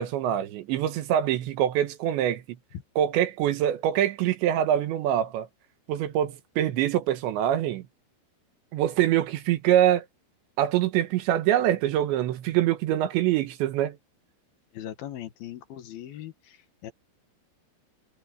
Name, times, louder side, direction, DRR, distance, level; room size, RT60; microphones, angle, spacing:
voice 1, 0.0-2.4 3.0-5.5 5.9-7.8 8.7-10.0 10.6-14.0, right 11 dB, 75° right, 3.3 m, -24 dB
voice 2, 14.7-16.9, left 12 dB, 60° left, 2.9 m, -40 dB
omnidirectional pair, 5.7 m